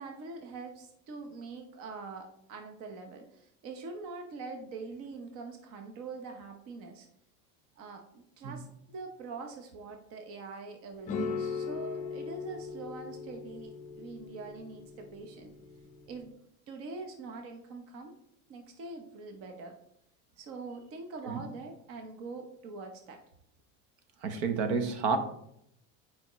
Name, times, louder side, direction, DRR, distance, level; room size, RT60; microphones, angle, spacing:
voice 1, 0.0-7.1 7.8-15.5 16.1-16.4 16.7-18.1 18.5-19.8 20.4-23.2, right 4 dB, 40° right, 4 dB, 0.8 m, -44 dB
sound 1, 11.0-16.2, left 5 dB, 20° left, 0.6 m, -39 dB
voice 2, 24.2-25.2, right 5 dB, 70° right, 7 dB, 1.1 m, -30 dB
9.3 x 5.0 x 3.0 m, 0.74 s
cardioid pair, 175°, 36 cm